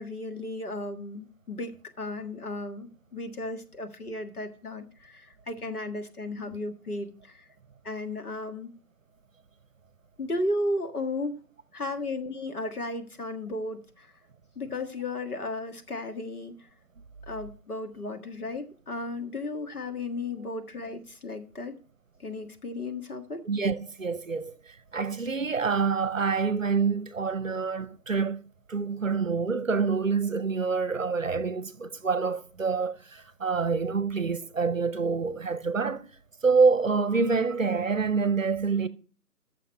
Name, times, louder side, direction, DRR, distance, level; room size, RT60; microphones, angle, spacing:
voice 1, 0.0-7.5 7.8-8.7 10.2-11.4 11.7-14.1 14.5-16.7 17.3-21.7 22.2-23.4, left 2 dB, 70° left, 1.7 m, -34 dB
voice 2, 23.4-28.4 28.7-36.1 36.4-38.9, right 4 dB, 55° right, 0.7 m, -26 dB
9.5 x 6.6 x 5.6 m
figure-of-eight pair, 170°, 47 cm